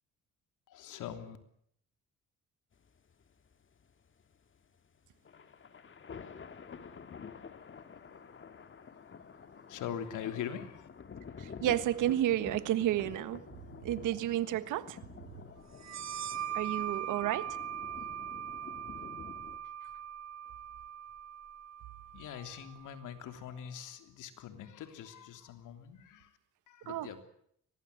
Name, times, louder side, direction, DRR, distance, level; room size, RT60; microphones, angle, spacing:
voice 1, 0.7-1.4 9.7-10.9 22.1-26.4 26.7-27.2, left 9 dB, 85° left, 3.2 m, -42 dB
sound 1, 2.7-19.6, left 6 dB, 40° left, 2.0 m, -49 dB
voice 2, 11.4-13.5 13.8-15.0 16.5-17.6 26.9-27.2, right 13 dB, 90° right, 1.5 m, -31 dB
sound 2, 15.8-23.1, right 9 dB, 60° right, 2.5 m, -41 dB
23.5 x 20.0 x 8.1 m
cardioid pair, 90°, 30 cm